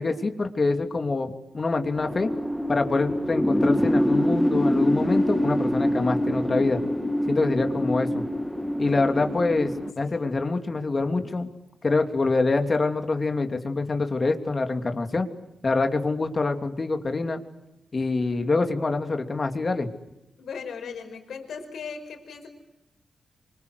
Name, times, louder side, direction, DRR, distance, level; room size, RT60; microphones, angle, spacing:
voice 1, 0.0-2.3 2.7-6.8 7.3-8.2 8.8-11.5 11.8-15.3 15.6-17.4 17.9-19.9, left 3 dB, 40° left, 6 dB, 3.0 m, -25 dB
sound 1, 2.0-9.9, equal, 5° left, 1.7 m, -25 dB
voice 2, 9.0-10.4 20.4-22.5, left 5 dB, 85° left, 3 dB, 5.2 m, -39 dB
28.5 x 25.5 x 8.2 m, 0.90 s
cardioid pair, 75°, 0 cm